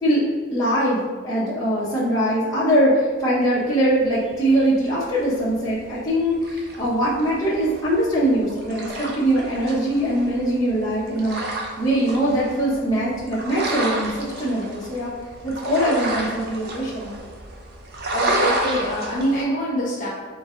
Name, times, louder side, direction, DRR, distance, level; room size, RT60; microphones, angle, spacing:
voice 1, 0.5-11.4 11.8-15.1 15.4-17.1, right 1 dB, 15° left, -10 dB, 1.0 m, -22 dB
sound 1, 4.0-19.4, right 1 dB, 50° right, 0.7 m, -31 dB
voice 2, 18.1-20.1, equal, 40° left, -4 dB, 1.1 m, -25 dB
4.3 x 3.3 x 3.6 m, 1.5 s
head